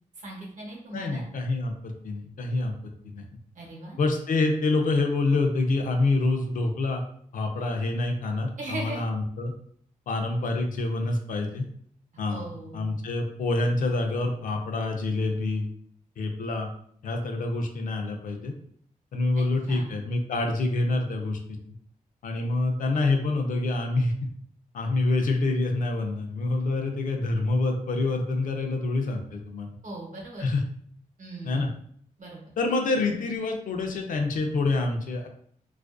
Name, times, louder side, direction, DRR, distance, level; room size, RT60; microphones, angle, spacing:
voice 1, 0.2-1.2 3.5-4.0 8.6-9.0 12.3-12.8 19.3-19.9 29.8-30.4 31.2-31.7 32.2-32.4, right 2 dB, 65° right, -2 dB, 0.9 m, -38 dB
voice 2, 0.9-2.7 3.1-3.2 4.0-7.0 7.3-9.5 10.1-11.6 12.2-15.7 16.2-16.7 17.0-18.5 19.1-21.6 22.2-24.1 24.7-29.7 30.4-30.6 31.4-31.7 32.6-35.3, left 2 dB, 70° left, 3 dB, 0.4 m, -27 dB
2.4 x 2.2 x 2.4 m, 0.64 s
wide cardioid pair, 120°, 14 cm